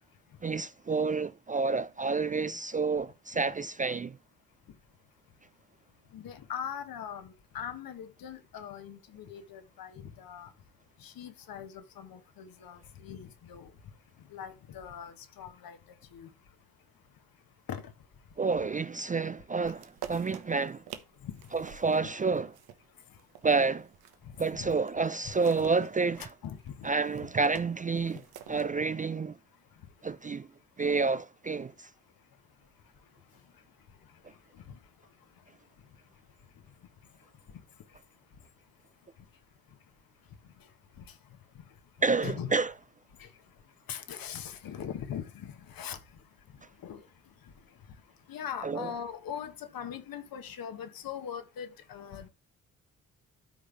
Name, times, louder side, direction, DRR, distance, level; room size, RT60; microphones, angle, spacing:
voice 1, 0.4-4.2 18.4-20.8 21.5-22.5 23.4-23.9 24.4-26.3 26.8-28.2 28.5-29.4 30.0-30.5 30.8-31.9 42.0-42.7 48.6-48.9, right 4 dB, 20° right, 0.5 m, -29 dB
voice 2, 6.1-10.5 11.0-13.7 14.3-15.8 16.1-16.3 17.7-17.8 21.2-21.3 24.6-24.7 26.2-26.6 42.2-42.5 43.2-43.3 43.9-46.0 46.8-47.0 48.3-52.3, left 8 dB, 60° left, 1.5 m, -41 dB
sound 1, 19.6-24.5 24.9-28.7, right 10 dB, 70° right, 1.2 m, -48 dB
12.5 x 5.1 x 3.4 m
hypercardioid pair, 40°, 39 cm